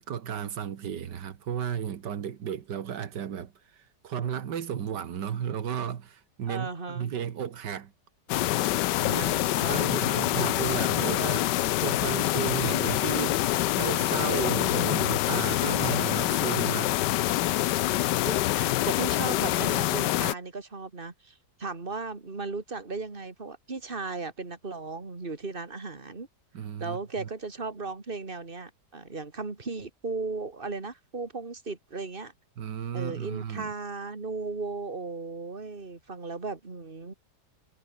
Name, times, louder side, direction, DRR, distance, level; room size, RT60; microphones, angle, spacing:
voice 1, 0.0-7.9 9.1-9.3 9.7-17.0 26.5-27.3 32.6-33.7, right 8 dB, 90° right, 2.0 m, -34 dB
voice 2, 6.5-7.1 9.0-10.3 18.3-26.3 26.8-32.3 32.9-37.1, right 3 dB, 30° right, 2.8 m, -36 dB
sound 1, 8.3-20.3, left 15 dB, 85° left, 1.3 m, -26 dB
omnidirectional pair, 1.8 m